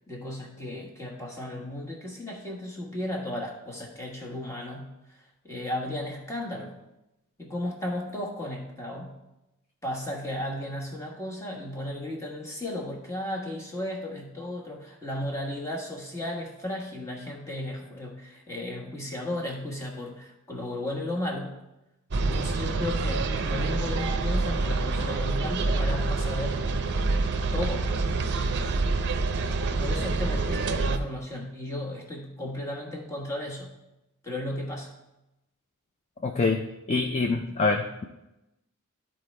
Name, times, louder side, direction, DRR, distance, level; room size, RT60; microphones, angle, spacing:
voice 1, 0.1-6.8 7.4-9.2 9.8-21.6 22.2-26.8 27.5-28.0 29.7-33.7 34.2-34.9, left 1 dB, 15° left, -1 dB, 1.2 m, -35 dB
sound 1, 22.1-31.0, right 3 dB, 50° right, 0.5 m, -27 dB
voice 2, 36.2-36.6 36.9-38.0, left 3 dB, 30° left, 5 dB, 0.4 m, -25 dB
12.0 x 4.4 x 3.2 m, 0.94 s
head